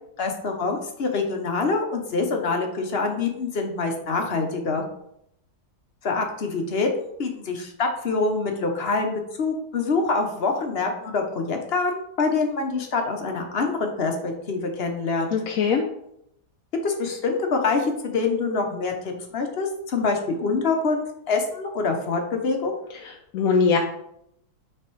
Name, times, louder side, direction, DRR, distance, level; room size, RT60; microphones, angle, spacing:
voice 1, 0.2-4.8 6.0-15.3 16.8-22.7, left 4 dB, 45° left, 4 dB, 0.9 m, -25 dB
voice 2, 15.3-15.8 23.0-23.8, left 5 dB, 70° left, 1 dB, 1.0 m, -21 dB
6.6 x 3.4 x 4.5 m, 0.76 s
omnidirectional pair, 1.7 m